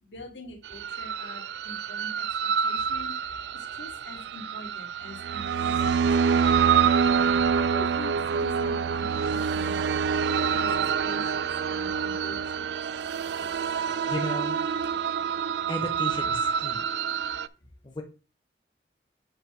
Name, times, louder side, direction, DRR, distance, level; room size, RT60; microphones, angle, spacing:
voice 1, 0.0-2.2 2.6-3.1 3.5-6.0 7.4-9.8 10.2-10.7 11.0-12.7, left 1 dB, 85° left, 2 dB, 2.3 m, -44 dB
sound 1, 0.7-17.5, right 6 dB, 70° right, 0.3 m, -26 dB
voice 2, 13.8-14.6 15.7-16.9 17.8-18.0, left 1 dB, 25° left, 3 dB, 0.8 m, -35 dB
7.9 x 2.9 x 6.1 m, 0.32 s
head